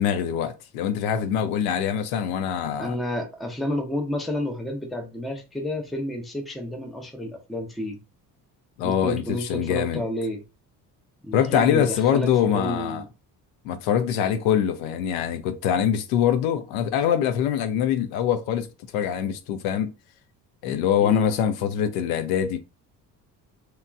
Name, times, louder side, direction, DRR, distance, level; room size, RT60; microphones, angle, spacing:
voice 1, 0.0-3.0 8.8-10.0 11.3-13.0 13.6-18.7 18.9-19.9 20.6-22.6, left 9 dB, 60° left, 0.5 m, -24 dB
voice 2, 2.8-8.0 8.8-10.4 11.2-11.8 12.1-13.1 21.0-21.3, left 1 dB, ahead, 0.5 m, -30 dB
2.9 x 2.1 x 2.3 m
figure-of-eight pair, 50°, 49 cm